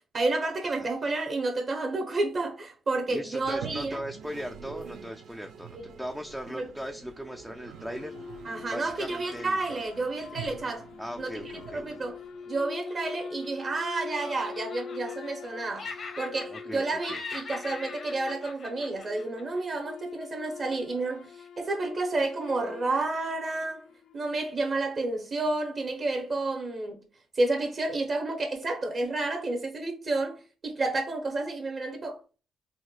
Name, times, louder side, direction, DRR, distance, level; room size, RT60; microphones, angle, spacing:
voice 1, 0.1-4.0 5.7-5.8 6.6-6.7 8.4-10.9 11.2-11.3 11.7-12.2 12.5-23.9 24.1-27.0 27.3-30.4 30.6-32.2, right 2 dB, 45° right, 0.8 m, -30 dB
voice 2, 3.1-8.2 8.7-9.6 11.0-12.0 16.5-17.2, equal, ahead, 0.3 m, -39 dB
Toilet flush, 3.4-12.5, right 7 dB, 75° right, 0.4 m, -46 dB
sound 1, 7.8-24.4, left 5 dB, 70° left, 0.4 m, -44 dB
Laughter, 12.6-13.8 14.1-15.5 15.7-16.8 17.0-19.6, left 4 dB, 50° left, 0.8 m, -41 dB
4.2 x 2.1 x 2.3 m
cardioid pair, 90°, 0 cm